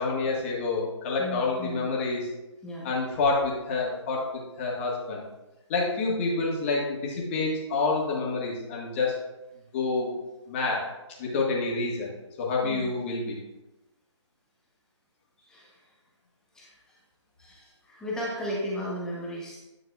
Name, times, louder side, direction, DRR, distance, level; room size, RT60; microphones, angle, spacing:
voice 1, 0.0-2.2 2.8-4.2 4.6-5.2 5.7-9.1 9.7-10.1 10.5-10.8 11.2-12.1 12.4-13.4, left 3 dB, 25° left, -3 dB, 1.6 m, -28 dB
voice 2, 1.2-1.9 2.6-2.9 12.6-13.0 15.5-15.8 16.5-17.0 17.4-19.6, equal, 5° left, -6 dB, 0.9 m, -35 dB
9.5 x 5.9 x 2.4 m, 1.0 s
figure-of-eight pair, 150°, 16 cm